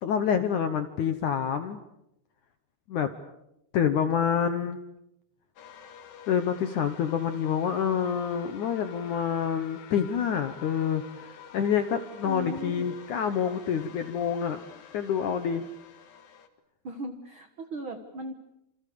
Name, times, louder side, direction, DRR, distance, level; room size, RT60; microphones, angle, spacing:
voice 1, 0.0-1.8 2.9-3.1 3.7-4.8 6.3-14.6 14.9-15.6, left 8 dB, 70° left, 9 dB, 1.9 m, -27 dB
sound 1, 5.6-16.5, left 8 dB, 50° left, 2.6 m, -48 dB
voice 2, 12.2-12.8 16.8-18.3, right 1 dB, 85° right, 7 dB, 1.1 m, -37 dB
29.5 x 27.5 x 6.9 m, 0.84 s
omnidirectional pair, 5.1 m